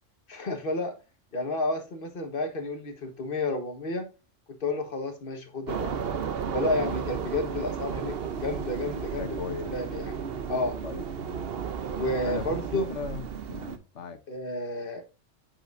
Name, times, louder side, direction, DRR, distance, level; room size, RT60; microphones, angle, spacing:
voice 1, 0.3-1.0 1.3-4.1 4.6-6.0 6.5-10.8 12.0-12.9 14.3-15.0, left 2 dB, 45° left, 1.6 m, -31 dB
sound 1, 5.7-13.8, right 6 dB, 55° right, 0.9 m, -33 dB
voice 2, 9.2-9.7 10.8-11.5 12.2-12.5 12.7-14.2, left 6 dB, 70° left, 1.4 m, -38 dB
7.9 x 5.8 x 2.6 m
omnidirectional pair, 1.3 m